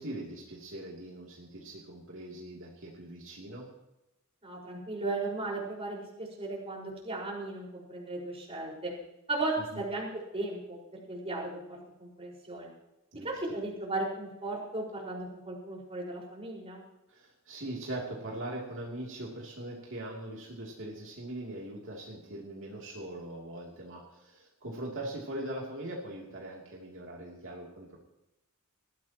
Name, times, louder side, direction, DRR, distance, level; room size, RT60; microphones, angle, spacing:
voice 1, 0.0-3.7 9.6-9.8 13.1-13.6 17.1-28.0, right 1 dB, 60° right, -3 dB, 3.0 m, -41 dB
voice 2, 4.4-8.9 9.3-12.7 13.2-16.8, right 2 dB, 25° right, -3 dB, 5.1 m, -36 dB
20.5 x 15.0 x 3.0 m, 0.91 s
head